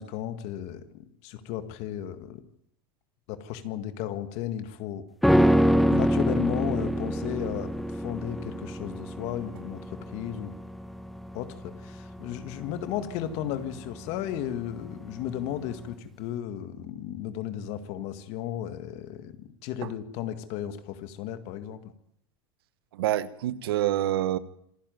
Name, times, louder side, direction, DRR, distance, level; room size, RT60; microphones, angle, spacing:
voice 1, 0.0-2.4 3.3-5.0 5.9-10.5 11.3-21.9, left 10 dB, 60° left, 2.0 m, -34 dB
sound 1, 5.2-14.6 14.9-15.0, equal, ahead, 1.0 m, -26 dB
voice 2, 22.9-24.4, right 13 dB, 85° right, 1.2 m, -27 dB
26.5 x 10.5 x 9.4 m
supercardioid pair, 120°, 12 cm